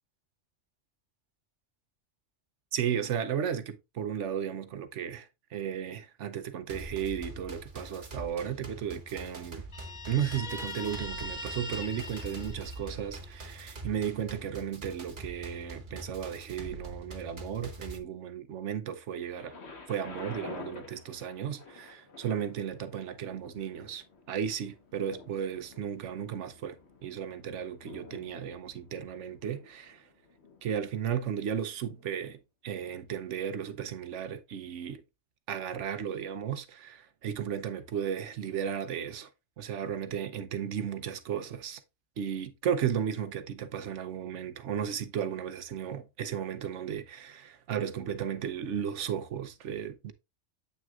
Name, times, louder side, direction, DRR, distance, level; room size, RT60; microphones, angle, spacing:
voice 1, 2.7-9.6 10.1-19.6 19.9-30.1 30.6-32.4 32.6-35.0 35.5-39.3 39.6-41.8 42.2-50.1, right 8 dB, 85° right, 1.1 m, -34 dB
sound 1, 6.7-18.0, right 2 dB, 45° right, 1.2 m, -44 dB
Guitar, 9.7-13.3, left 2 dB, 40° left, 1.1 m, -41 dB
Thunder, 19.4-31.2 32.0-32.1, left 4 dB, 65° left, 1.6 m, -50 dB
8.5 x 6.0 x 2.4 m
omnidirectional pair, 1.2 m